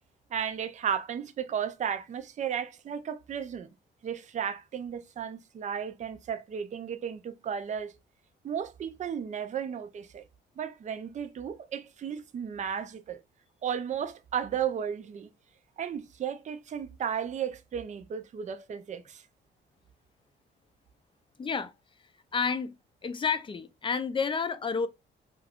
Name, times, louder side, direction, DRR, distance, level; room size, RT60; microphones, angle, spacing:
voice 1, 0.3-3.7 4.0-7.9 8.4-10.2 10.6-13.2 13.6-15.3 15.8-19.2, right 8 dB, 35° right, 0.4 m, -34 dB
voice 2, 21.4-21.7 22.3-22.7 23.0-24.9, left 5 dB, 25° left, 0.4 m, -30 dB
2.4 x 2.3 x 3.4 m
cardioid pair, 90°, 20 cm